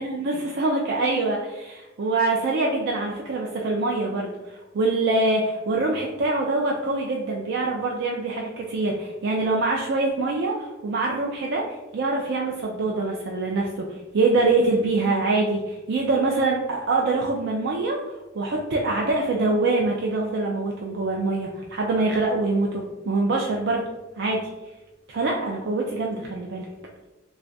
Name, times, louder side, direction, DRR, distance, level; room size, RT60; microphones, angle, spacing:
voice 1, 0.0-23.8 24.2-24.4 25.1-26.7, right 3 dB, 65° right, -1 dB, 0.4 m, -24 dB
3.2 x 2.4 x 3.8 m, 1.1 s
head